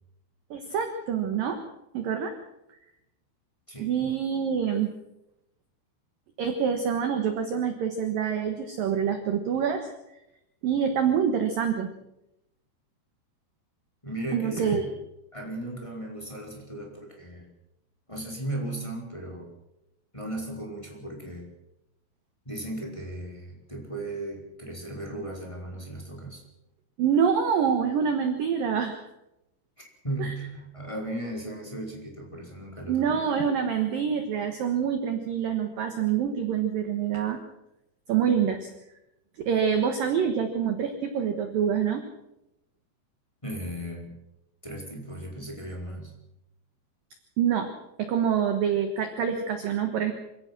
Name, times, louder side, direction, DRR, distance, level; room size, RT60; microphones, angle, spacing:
voice 1, 0.5-1.6 1.9-2.4 3.8-4.9 6.4-9.9 10.6-11.9 14.3-14.8 27.0-29.0 30.2-30.3 32.9-37.4 38.1-38.7 39.5-42.0 47.4-47.7 48.0-50.1, right 7 dB, 65° right, 7 dB, 2.4 m, -26 dB
voice 2, 14.0-14.9 15.3-17.5 18.1-19.5 20.1-21.5 22.4-26.4 29.8-33.2 43.4-44.1 44.6-46.1, right 1 dB, 5° left, -1 dB, 4.2 m, -36 dB
27.0 x 17.0 x 6.2 m, 0.87 s
omnidirectional pair, 5.7 m